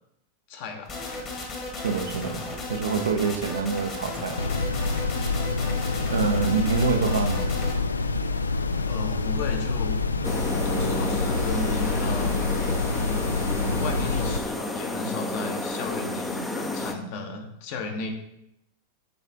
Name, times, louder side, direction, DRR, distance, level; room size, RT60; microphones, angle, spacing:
voice 1, 0.5-1.0 7.0-7.1 8.8-10.0 10.6-12.4 13.7-18.1, left 3 dB, 50° left, 3 dB, 1.0 m, -34 dB
sound 1, 0.9-7.8, left 2 dB, 30° left, 1.3 m, -35 dB
voice 2, 1.7-4.4 6.1-7.5, right 6 dB, 70° right, 6 dB, 0.6 m, -26 dB
sound 2, 4.4-14.4, left 3 dB, 75° left, 0.3 m, -27 dB
sound 3, 10.2-16.9, left 2 dB, 10° left, 0.6 m, -30 dB
7.8 x 3.3 x 3.8 m, 0.82 s
figure-of-eight pair, 90°, 0 cm